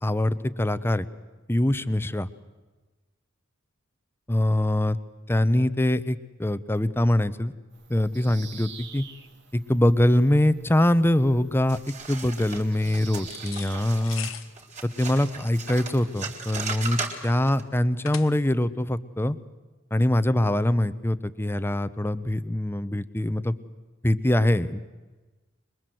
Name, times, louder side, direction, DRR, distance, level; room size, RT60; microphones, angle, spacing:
voice 1, 0.0-1.0 1.5-2.3 4.3-5.0 5.3-7.5 7.9-9.0 9.5-14.3 14.8-19.4 19.9-23.5 24.0-24.8, left 1 dB, 10° left, 14 dB, 0.8 m, -23 dB
Bird vocalization bird call bird song, 7.7-14.1, right 6 dB, 60° right, 2.1 m, -48 dB
sound 1, 11.7-17.6, right 4 dB, 35° right, 3.9 m, -37 dB
sound 2, 13.2-18.7, left 10 dB, 85° left, 1.2 m, -42 dB
25.5 x 22.5 x 7.8 m, 1.2 s
head